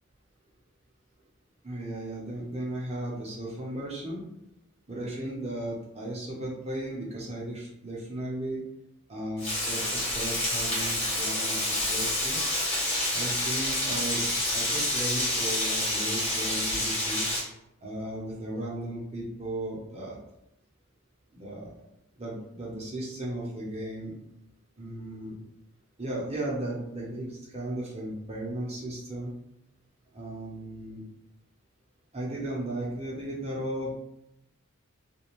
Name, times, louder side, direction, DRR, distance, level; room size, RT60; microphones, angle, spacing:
voice 1, 1.6-4.2 4.9-8.6 9.1-12.4 13.1-14.2 14.5-17.3 17.8-20.2 21.3-21.8 22.2-24.1 24.8-25.4 26.0-29.3 30.1-31.0 32.1-33.9, right 1 dB, 30° right, -4 dB, 0.7 m, -35 dB
Frying (food), 9.4-17.4, left 1 dB, 30° left, 1.0 m, -28 dB
2.5 x 2.3 x 3.0 m, 0.81 s
head